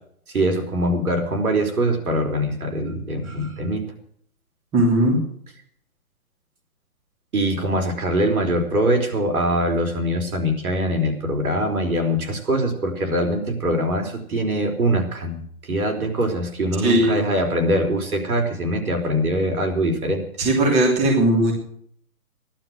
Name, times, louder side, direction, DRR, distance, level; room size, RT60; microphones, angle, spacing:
voice 1, 0.3-3.9 7.3-20.2, right 1 dB, 75° right, 4 dB, 4.6 m, -23 dB
voice 2, 4.7-5.2 16.8-17.2 20.4-21.5, right 1 dB, 15° right, 2 dB, 3.1 m, -18 dB
15.5 x 12.0 x 6.3 m, 0.62 s
hypercardioid pair, 155°, 43 cm